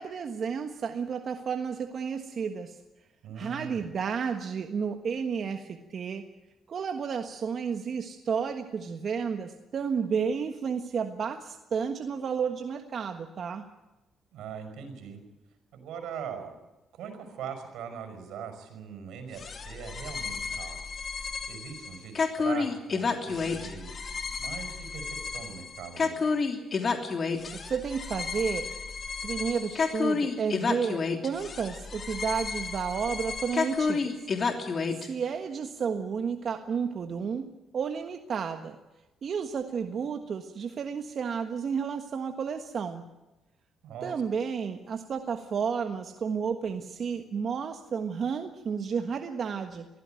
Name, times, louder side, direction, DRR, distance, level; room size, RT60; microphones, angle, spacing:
voice 1, 0.0-2.8 3.4-6.2 6.7-13.7 27.4-28.7 29.2-34.2 34.6-38.8 39.2-43.0 44.0-49.9, right 6 dB, 55° right, 6 dB, 1.4 m, -32 dB
voice 2, 3.2-3.9 14.3-15.2 15.7-16.6 16.9-20.8 21.5-23.9 24.4-26.2 43.8-44.1, right 7 dB, 85° right, 7 dB, 5.8 m, -41 dB
sound 1, 19.3-35.1, left 4 dB, 45° left, 3.0 m, -31 dB
22.5 x 15.5 x 9.2 m, 1.0 s
cardioid pair, 90°, 0 cm